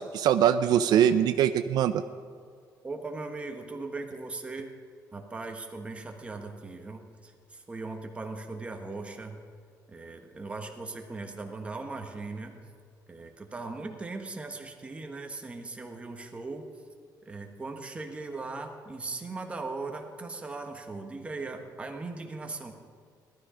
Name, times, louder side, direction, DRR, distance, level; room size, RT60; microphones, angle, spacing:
voice 1, 0.0-2.0, right 9 dB, 70° right, 10 dB, 0.5 m, -23 dB
voice 2, 2.8-4.7 5.1-9.4 9.9-12.6 13.1-16.7 17.3-22.7, right 3 dB, 15° right, 4 dB, 1.3 m, -39 dB
17.5 x 12.5 x 5.0 m, 2.1 s
cardioid pair, 165°, 7 cm